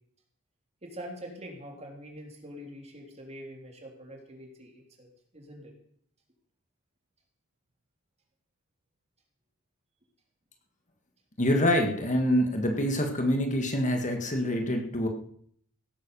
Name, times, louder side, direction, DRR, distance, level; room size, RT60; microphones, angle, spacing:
voice 1, 0.8-5.7, equal, 30° right, 1 dB, 3.3 m, -44 dB
voice 2, 11.4-15.1, left 1 dB, 35° left, 4 dB, 1.8 m, -26 dB
16.5 x 9.6 x 6.9 m, 0.65 s
head